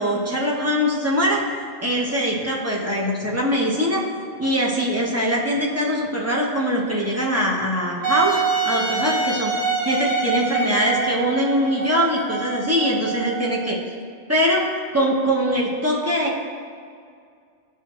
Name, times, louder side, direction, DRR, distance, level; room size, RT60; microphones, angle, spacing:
voice 1, 0.0-1.4 1.8-4.0 4.4-8.4 8.6-9.5 9.8-13.8 14.3-14.7 14.9-16.4, equal, 15° right, -4 dB, 0.7 m, -22 dB
Wind instrument woodwind instrument, 8.0-13.7, right 5 dB, 45° right, 0.9 m, -26 dB
11.0 x 4.6 x 3.0 m, 2.2 s
omnidirectional pair, 1.3 m